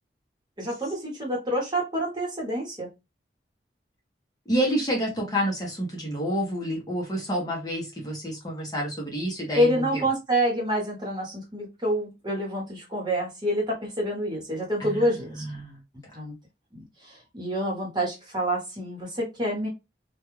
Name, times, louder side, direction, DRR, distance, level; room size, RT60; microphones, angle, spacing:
voice 1, 0.6-2.9 9.6-15.4 16.1-16.3 17.3-19.7, equal, 25° right, -2 dB, 1.1 m, -27 dB
voice 2, 4.5-10.1 14.8-15.8, equal, 20° left, -2 dB, 0.7 m, -29 dB
2.3 x 2.3 x 3.0 m, 0.23 s
head